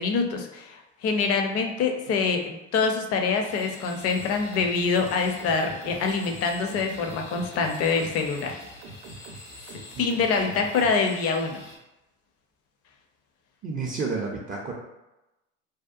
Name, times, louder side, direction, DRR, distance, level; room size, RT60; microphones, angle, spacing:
voice 1, 0.0-8.6 10.0-11.6, left 4 dB, 40° left, 3 dB, 0.5 m, -25 dB
sound 1, 3.4-11.8, left 2 dB, 85° left, 0.8 m, -46 dB
sound 2, 4.1-10.9, right 3 dB, 65° right, 0.6 m, -45 dB
voice 2, 13.6-14.7, right 4 dB, 25° right, -3 dB, 0.4 m, -30 dB
2.7 x 2.1 x 2.4 m, 0.96 s
hypercardioid pair, 80°, 36 cm